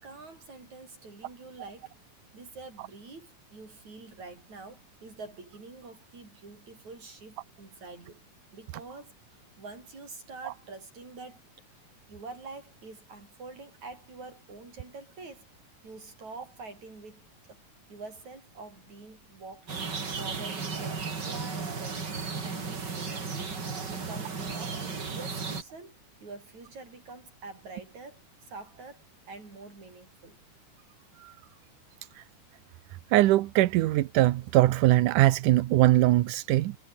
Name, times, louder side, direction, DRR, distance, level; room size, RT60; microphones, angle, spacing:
voice 1, 0.0-1.9 2.3-8.2 8.5-15.5 15.8-19.9 20.2-23.6 23.9-30.4, right 3 dB, 60° right, 8.9 m, -46 dB
sound 1, 19.7-25.6, right 4 dB, 35° right, 3.3 m, -35 dB
voice 2, 33.1-36.8, right 16 dB, 80° right, 2.4 m, -22 dB
omnidirectional pair, 3.7 m